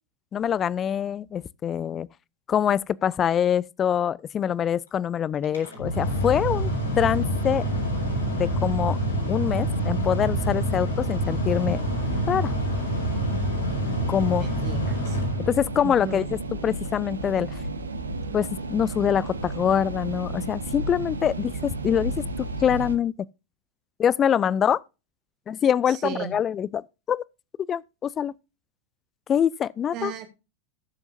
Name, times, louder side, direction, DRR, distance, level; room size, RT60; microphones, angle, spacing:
voice 1, 0.3-2.1 2.5-6.7 7.0-7.6 8.3-9.0 9.3-11.8 12.3-12.5 14.1-14.5 15.5-17.5 18.3-22.2 22.6-23.1 24.0-24.8 25.5-27.2 27.7-28.3 29.3-30.1, left 9 dB, 25° left, 0.5 m, -24 dB
Mechanical fan, 5.4-16.0, equal, 75° left, 5.0 m, -27 dB
sound 1, 7.4-23.0, right 2 dB, 75° right, 1.3 m, -35 dB
voice 2, 14.4-15.2 15.8-16.2 25.9-26.3 29.9-30.3, right 9 dB, 40° right, 2.4 m, -34 dB
19.0 x 7.1 x 2.5 m
figure-of-eight pair, 90°, 0 cm